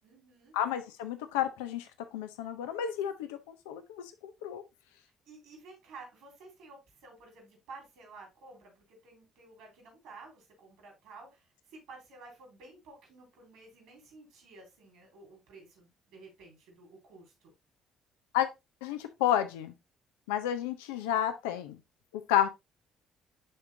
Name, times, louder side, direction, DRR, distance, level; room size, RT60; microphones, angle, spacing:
voice 1, 0.0-0.5 5.3-17.5, right 3 dB, 75° right, 3.9 m, -52 dB
voice 2, 0.5-1.9 2.1-4.6 18.3-18.5 18.8-19.7 20.3-21.8 22.1-22.5, left 10 dB, 85° left, 0.6 m, -31 dB
11.0 x 3.7 x 2.7 m
hypercardioid pair, 55°, 0 cm